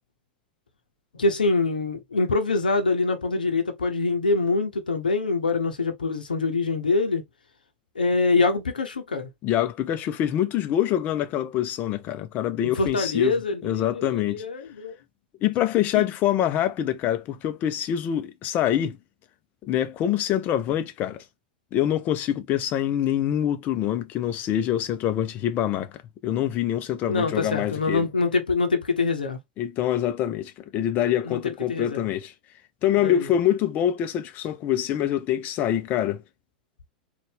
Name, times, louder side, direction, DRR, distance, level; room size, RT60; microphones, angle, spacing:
voice 1, 1.2-7.2 7.9-9.3 12.6-14.9 15.9-16.1 27.1-29.4 31.2-32.0 33.0-33.3, left 3 dB, 80° left, 0.9 m, -24 dB
voice 2, 9.4-14.4 15.4-19.0 19.6-21.2 21.7-25.9 26.2-28.1 29.6-32.3 32.8-36.2, left 11 dB, 40° left, 0.8 m, -25 dB
4.1 x 2.6 x 3.5 m
figure-of-eight pair, 95°, 5 cm